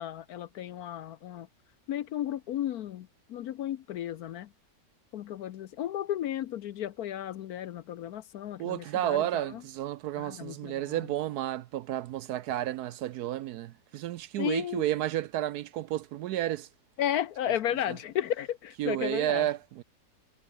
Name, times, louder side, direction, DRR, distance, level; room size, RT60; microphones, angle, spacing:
voice 1, 0.0-1.5 1.9-4.5 5.1-9.6 10.2-11.1 14.4-14.8 17.0-19.5, left 11 dB, 70° left, 1.1 m, -34 dB
voice 2, 8.6-16.7 18.8-19.8, right 13 dB, 70° right, 1.0 m, -31 dB
omnidirectional pair, 1.9 m